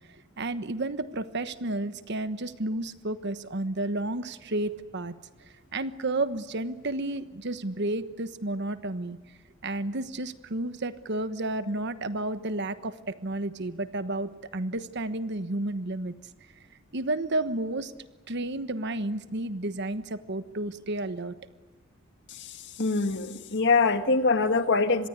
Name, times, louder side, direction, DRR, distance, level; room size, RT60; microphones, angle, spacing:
voice 1, 0.4-5.1 5.7-9.2 9.6-16.1 16.9-17.9 18.3-21.3, right 2 dB, 55° right, 12 dB, 1.2 m, -31 dB
voice 2, 22.8-25.1, left 4 dB, 60° left, 8 dB, 1.8 m, -24 dB
26.0 x 21.5 x 9.6 m, 1.1 s
head